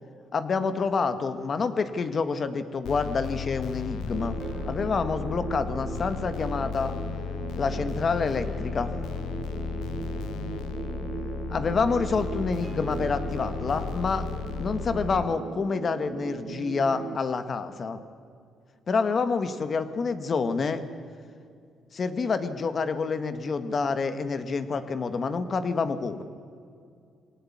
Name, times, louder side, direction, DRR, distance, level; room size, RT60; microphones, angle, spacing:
voice 1, 0.3-4.4 4.6-6.9 7.6-8.9 11.5-14.3 14.6-18.0 18.9-20.8 21.9-26.2, left 4 dB, 45° left, 10 dB, 1.8 m, -28 dB
sound 1, 2.8-15.2, left 7 dB, 75° left, 0.9 m, -34 dB
sound 2, 4.1-17.2, right 8 dB, 60° right, 0.6 m, -38 dB
sound 3, 4.4-7.4 7.9-10.7 11.8-15.1, right 1 dB, 10° right, 3.7 m, -49 dB
23.0 x 18.0 x 9.7 m, 2.4 s
cardioid pair, 90°, 0 cm